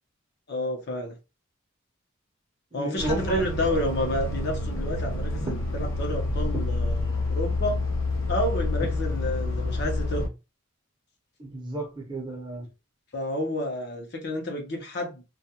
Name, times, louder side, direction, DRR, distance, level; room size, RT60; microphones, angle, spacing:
voice 1, 0.5-1.2 2.7-7.8 8.3-10.3 13.1-15.2, left 1 dB, 55° left, 0.8 m, -30 dB
voice 2, 2.7-3.4 5.4-5.5 6.5-6.7 11.4-12.7, right 1 dB, 20° right, 0.7 m, -32 dB
sound 1, 3.0-10.3, left 2 dB, 85° left, 0.8 m, -28 dB
2.4 x 2.2 x 2.7 m
head